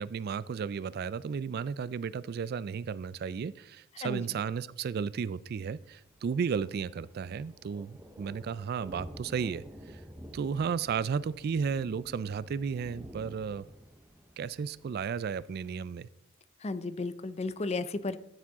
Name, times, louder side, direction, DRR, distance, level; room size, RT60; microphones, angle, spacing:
voice 1, 0.0-10.0 10.3-13.7 14.4-16.1, right 6 dB, 50° right, 19 dB, 0.3 m, -34 dB
Thunder, 5.8-15.8, equal, 10° right, 0.7 m, -51 dB
voice 2, 16.6-18.2, left 3 dB, 30° left, 13 dB, 0.5 m, -34 dB
12.5 x 7.4 x 3.6 m, 0.80 s
head